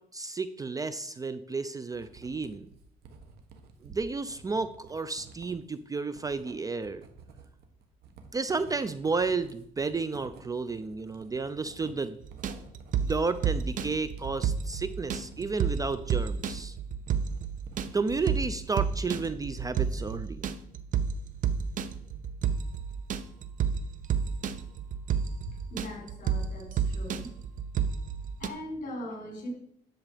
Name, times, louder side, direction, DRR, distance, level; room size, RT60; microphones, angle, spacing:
voice 1, 0.1-2.7 3.8-7.0 8.3-12.2 13.0-16.8 17.9-20.5, right 4 dB, 20° right, 13 dB, 0.5 m, -32 dB
Writing, 1.9-18.5 18.8-19.5, right 4 dB, 70° right, 1.7 m, -52 dB
sound 1, 12.2-28.5, right 7 dB, 50° right, 0.8 m, -31 dB
voice 2, 25.5-27.3 28.4-29.5, left 1 dB, 50° left, 1 dB, 4.5 m, -40 dB
10.5 x 7.3 x 5.0 m, 0.70 s
cardioid pair, 110°, 17 cm